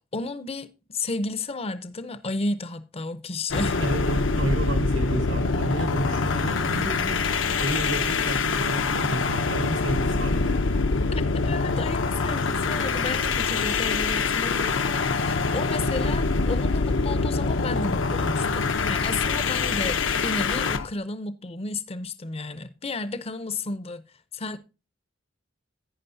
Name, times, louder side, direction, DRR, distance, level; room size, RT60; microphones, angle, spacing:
voice 1, 0.1-3.8 11.1-24.0 24.3-24.6, left 3 dB, 30° left, 0.6 m, -32 dB
sound 1, 3.5-20.9, left 4 dB, 75° left, 0.7 m, -25 dB
voice 2, 3.8-10.6, right 2 dB, 75° right, 1.2 m, -32 dB
11.0 x 9.4 x 2.6 m
head